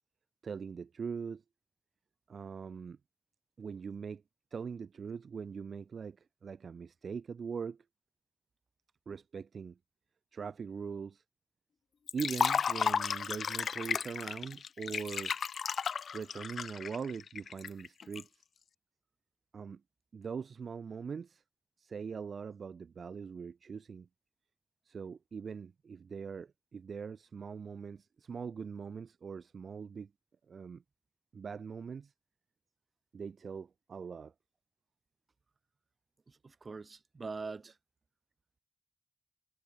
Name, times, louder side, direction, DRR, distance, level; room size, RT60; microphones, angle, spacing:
voice 1, 0.4-1.4 2.3-3.0 3.6-4.2 4.5-7.8 9.1-9.8 10.3-11.2 12.1-15.3 16.1-18.4 19.5-19.8 20.1-21.4 21.8-24.1 24.9-30.1 30.5-30.8 31.3-32.1 33.1-34.3, right 6 dB, 55° right, 0.5 m, -41 dB
Liquid, 12.1-18.2, left 6 dB, 65° left, 0.8 m, -33 dB
voice 2, 36.3-37.8, right 4 dB, 35° right, 3.1 m, -43 dB
wide cardioid pair, 155°, 0 cm